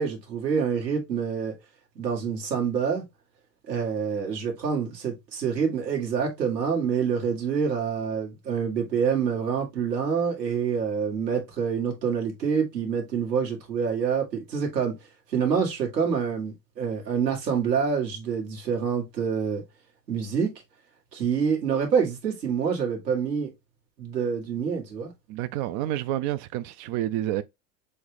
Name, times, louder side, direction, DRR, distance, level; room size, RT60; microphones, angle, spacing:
voice 1, 0.0-1.5 2.0-3.0 3.7-14.9 15.3-19.6 20.1-20.5 21.1-23.5 24.0-25.1, right 6 dB, 90° right, 1.9 m, -26 dB
voice 2, 25.3-27.4, right 13 dB, 45° right, 0.4 m, -29 dB
6.2 x 2.4 x 3.2 m
hypercardioid pair, 90°, 49 cm